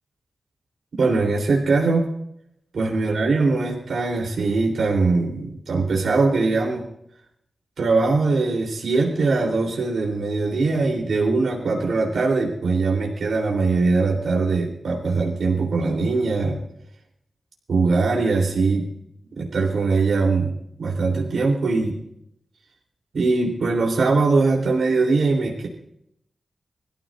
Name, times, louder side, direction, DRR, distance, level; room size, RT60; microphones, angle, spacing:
voice 1, 0.9-2.1 2.7-6.8 7.8-16.6 17.7-18.9 19.4-20.5 20.8-22.0 23.1-25.7, right 3 dB, 85° right, -1 dB, 3.5 m, -21 dB
25.5 x 14.5 x 2.6 m, 0.74 s
wide cardioid pair, 150°, 0 cm